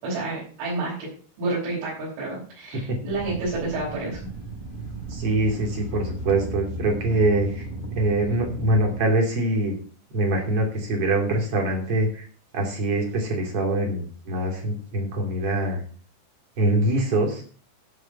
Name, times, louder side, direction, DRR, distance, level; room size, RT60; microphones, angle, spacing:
voice 1, 0.0-1.0 1.4-4.2, right 2 dB, 85° right, -9 dB, 7.2 m, -29 dB
sound 1, 3.1-9.0, right 2 dB, 30° left, 0.9 m, -35 dB
voice 2, 5.1-7.7 7.9-9.8 10.1-12.2 12.5-15.8 16.6-17.4, right 1 dB, 35° right, 1 dB, 3.1 m, -24 dB
13.5 x 4.8 x 6.8 m, 0.42 s
omnidirectional pair, 5.4 m